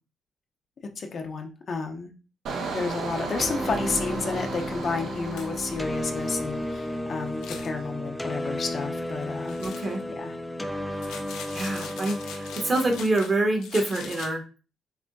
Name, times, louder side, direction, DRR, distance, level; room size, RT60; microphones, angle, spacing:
voice 1, 1.0-2.1 2.7-9.9 10.2-10.4 10.9-11.0, left 4 dB, 50° left, 4 dB, 0.7 m, -31 dB
Engine, 2.5-7.1 7.5-7.8, right 4 dB, 75° right, 0.8 m, -36 dB
sound 1, 3.0-3.1 3.7-3.8 4.2-4.3 4.6-4.7 5.4-5.8 7.3-7.7 9.5-10.0 11.0-13.3 13.6-14.3, left 6 dB, 85° left, 0.7 m, -41 dB
sound 2, 3.4-13.0, left 1 dB, 5° left, 0.4 m, -33 dB
voice 2, 9.6-10.0 11.5-14.4, right 2 dB, 30° right, 3 dB, 1.0 m, -26 dB
5.8 x 2.1 x 2.6 m, 0.35 s
cardioid pair, 90°, 0 cm